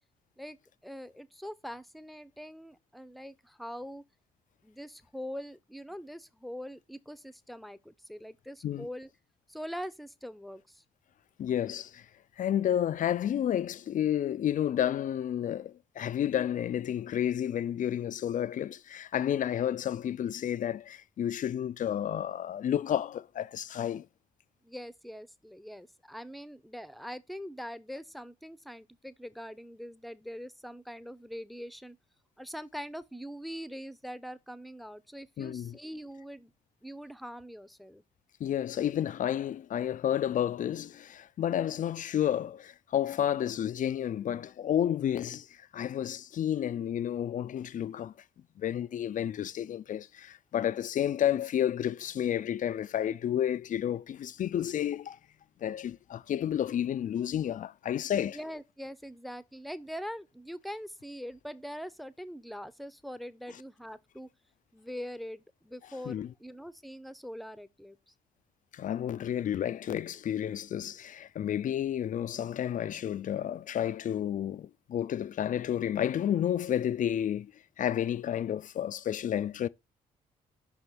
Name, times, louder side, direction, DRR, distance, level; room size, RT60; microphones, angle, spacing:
voice 1, 0.8-4.0 4.6-9.1 9.5-10.8 24.6-32.0 32.4-36.5 36.8-38.0 58.2-64.3 64.7-68.1, equal, ahead, 0.7 m, -43 dB
voice 2, 11.4-12.1 12.4-24.1 35.4-35.8 38.4-48.1 48.6-55.2 55.6-58.4 66.1-66.3 68.7-77.5 77.8-79.7, left 10 dB, 45° left, 0.4 m, -31 dB
5.8 x 3.5 x 5.7 m
hypercardioid pair, 40°, 19 cm